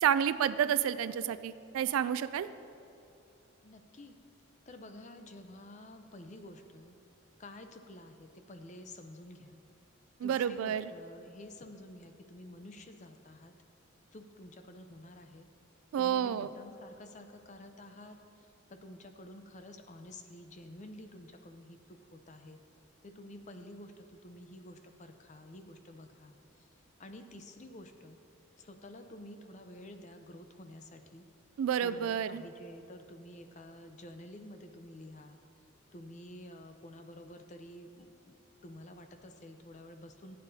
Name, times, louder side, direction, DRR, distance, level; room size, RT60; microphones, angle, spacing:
voice 1, 0.0-2.5 10.2-10.9 15.9-16.5 31.6-32.4, right 9 dB, 90° right, 14 dB, 0.3 m, -30 dB
voice 2, 3.6-4.2 4.7-7.0 7.4-9.6 10.2-13.5 14.1-15.5 16.0-22.6 23.0-26.7 27.0-28.2 28.6-31.3 31.8-35.4 35.9-38.4 38.6-40.4, left 1 dB, 35° left, 7 dB, 0.6 m, -50 dB
15.0 x 8.8 x 2.7 m, 2.8 s
head